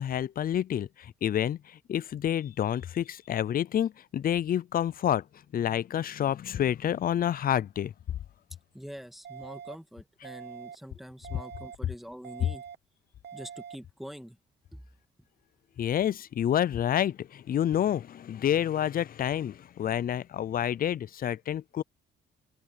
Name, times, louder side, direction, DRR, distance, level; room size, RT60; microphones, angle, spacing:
voice 1, 0.0-5.2 5.5-7.9 15.8-21.8, left 10 dB, 45° left, 0.5 m, -28 dB
voice 2, 8.7-12.6 13.3-14.4 14.7-14.8, equal, ahead, 2.2 m, -44 dB
sound 1, 9.2-9.7 10.2-10.7 11.2-11.7 12.2-12.7 13.2-13.7, right 8 dB, 55° right, 0.9 m, -44 dB
open air
cardioid pair, 90°, 20 cm